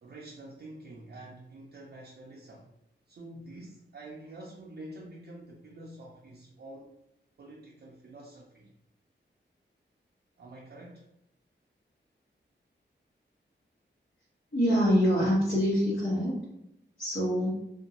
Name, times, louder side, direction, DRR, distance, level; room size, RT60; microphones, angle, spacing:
voice 1, 0.0-2.7 3.1-7.0 7.4-8.7 10.4-11.1, right 1 dB, 55° right, -3 dB, 0.4 m, -47 dB
voice 2, 14.5-16.4 17.0-17.6, equal, 70° left, -10 dB, 1.1 m, -25 dB
2.5 x 2.2 x 2.8 m, 0.80 s
wide cardioid pair, 80°, 20 cm